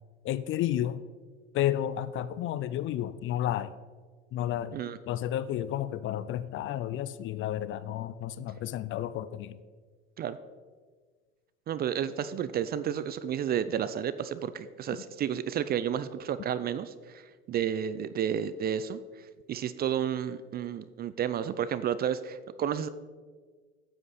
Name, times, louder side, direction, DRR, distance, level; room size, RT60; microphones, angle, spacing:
voice 1, 0.2-1.0 1.5-3.7 4.3-4.8 5.1-9.6, left 12 dB, 40° left, 15 dB, 0.5 m, -31 dB
voice 2, 11.7-17.2 17.5-19.0 19.5-22.9, right 9 dB, 30° right, 14 dB, 0.4 m, -31 dB
9.4 x 7.7 x 4.2 m, 1.5 s
hypercardioid pair, 85°, 33 cm